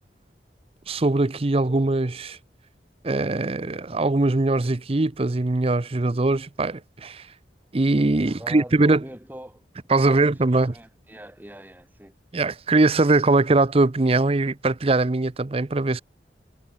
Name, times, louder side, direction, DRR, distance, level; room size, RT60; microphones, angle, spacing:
voice 1, 0.9-2.4 3.0-7.2 7.7-9.0 9.9-10.7 12.3-16.0, right 2 dB, 35° right, 0.7 m, -21 dB
voice 2, 8.4-9.6 10.0-12.1, right 1 dB, 10° right, 2.2 m, -42 dB
head